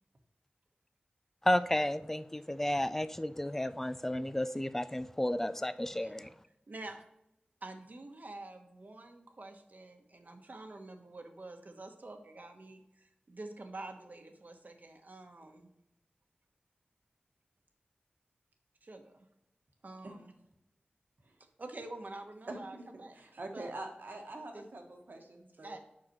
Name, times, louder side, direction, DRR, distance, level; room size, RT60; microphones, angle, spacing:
voice 1, 1.4-6.3, left 1 dB, 10° left, 13 dB, 0.3 m, -32 dB
voice 2, 5.9-6.3 6.7-7.0 7.6-15.7 18.8-19.3 19.8-20.3 21.6-23.2 23.5-23.9 24.5-24.6 25.6-25.8, right 2 dB, 55° right, 5 dB, 1.1 m, -47 dB
voice 3, 22.5-25.8, right 2 dB, 75° right, 3 dB, 1.3 m, -45 dB
7.6 x 5.8 x 3.0 m, 0.84 s
wide cardioid pair, 75°, 3 cm